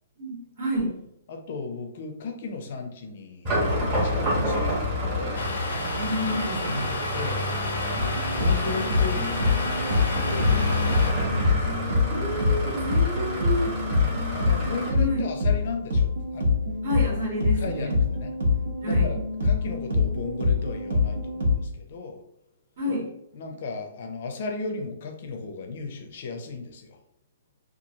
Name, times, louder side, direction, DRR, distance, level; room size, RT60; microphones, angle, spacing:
voice 1, 0.2-1.0 5.7-6.9 12.1-13.7 14.9-15.2 16.8-17.9 18.8-19.1 22.8-23.1, equal, 55° right, -4 dB, 1.0 m, -29 dB
voice 2, 1.3-5.5 7.1-11.0 13.9-16.6 17.5-18.3 18.8-19.2 19.4-22.2 23.3-27.0, left 4 dB, 40° left, 4 dB, 0.5 m, -36 dB
sound 1, 3.4-14.9, left 1 dB, 20° right, 0.9 m, -28 dB
Domestic sounds home sounds, 5.3-11.1, left 4 dB, 90° left, 0.5 m, -34 dB
sound 2, 8.0-21.6, left 3 dB, 80° right, 1.0 m, -25 dB
2.9 x 2.3 x 2.7 m, 0.79 s
hypercardioid pair, 175°, 0 cm